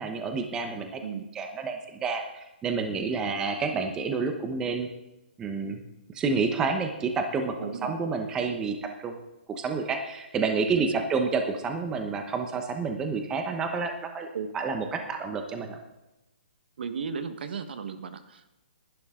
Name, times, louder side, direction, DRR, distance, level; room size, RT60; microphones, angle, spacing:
voice 1, 0.0-1.0 1.3-4.9 5.4-5.8 6.1-9.2 9.5-14.3 14.5-15.8, right 4 dB, 10° right, 5 dB, 1.0 m, -29 dB
voice 2, 7.6-7.9 10.8-10.9 14.3-14.5 16.8-18.5, right 6 dB, 60° right, 9 dB, 1.4 m, -35 dB
20.5 x 11.5 x 3.8 m, 0.95 s
hypercardioid pair, 170°, 6 cm